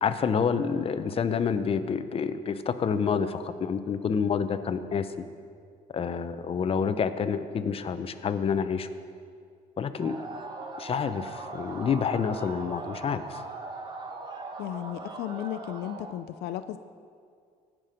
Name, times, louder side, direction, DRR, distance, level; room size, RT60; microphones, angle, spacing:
voice 1, 0.0-5.1 5.9-8.9 9.8-10.2 10.8-13.4, left 6 dB, 35° left, 10 dB, 0.6 m, -28 dB
sound 1, 10.0-16.2, right 3 dB, 25° right, 1.0 m, -40 dB
voice 2, 14.6-16.8, left 13 dB, 75° left, 11 dB, 0.5 m, -35 dB
17.5 x 6.1 x 5.1 m, 2.2 s
cardioid pair, 110°, 17 cm